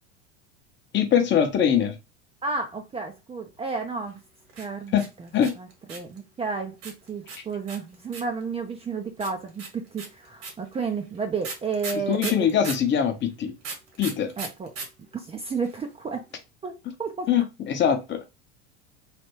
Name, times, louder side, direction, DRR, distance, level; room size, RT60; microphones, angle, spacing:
voice 1, 0.9-1.9 4.9-5.0 5.3-5.5 12.1-13.5 14.0-14.3 17.3-18.2, left 8 dB, 35° left, 0.8 m, -22 dB
voice 2, 2.4-4.2 4.6-4.9 5.2-5.3 5.6-12.5 14.4-14.7 15.1-16.2 16.6-16.7 17.0-17.3, right 4 dB, 20° right, 0.5 m, -32 dB
sound 1, 4.5-6.2 6.8-8.4 9.2-12.9 13.6-14.9 15.1-15.2 15.4-15.9, right 4 dB, 70° right, 1.8 m, -36 dB
3.3 x 2.6 x 2.9 m
hypercardioid pair, 95°, 34 cm